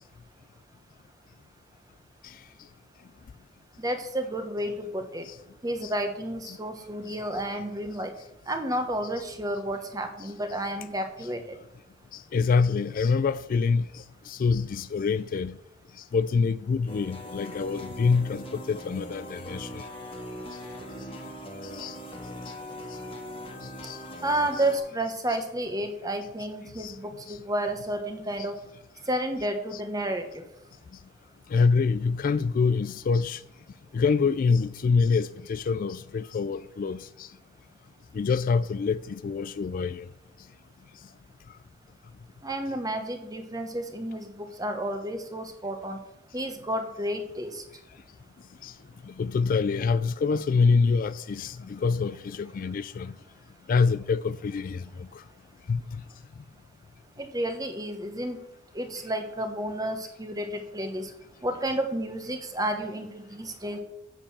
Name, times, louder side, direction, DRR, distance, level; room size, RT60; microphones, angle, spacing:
voice 1, 3.8-5.3 5.6-8.1 8.5-11.6 24.2-28.6 29.1-30.4 42.4-46.0 46.3-47.6 57.2-58.4 58.7-61.1 61.4-63.8, right 1 dB, 20° right, 1.2 m, -31 dB
voice 2, 12.1-15.6 16.1-19.8 21.7-22.0 23.8-24.0 26.8-26.9 27.3-27.4 31.5-33.4 33.9-37.3 38.1-40.1 48.6-48.7 49.1-53.1 53.7-55.1 55.7-55.8, left 5 dB, 45° left, 0.3 m, -26 dB
sound 1, 16.9-24.8, equal, 30° left, 1.6 m, -40 dB
7.7 x 6.5 x 7.2 m
head